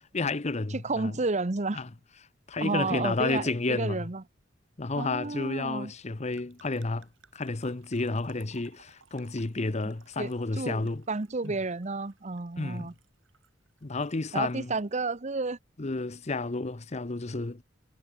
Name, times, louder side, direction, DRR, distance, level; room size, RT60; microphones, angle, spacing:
voice 1, 0.1-1.1 1.7-1.9 2.5-4.1 4.8-7.1 7.3-11.0 11.4-11.5 12.6-12.9 13.8-14.7 15.8-17.6, left 3 dB, 35° left, 0.8 m, -31 dB
voice 2, 0.7-1.8 2.6-4.2 5.0-5.9 10.2-10.3 10.6-12.9 14.3-15.6, right 3 dB, 35° right, 0.9 m, -31 dB
sound 1, 3.6-3.7 6.4-14.2 14.5-14.9, right 4 dB, 80° right, 4.0 m, -60 dB
head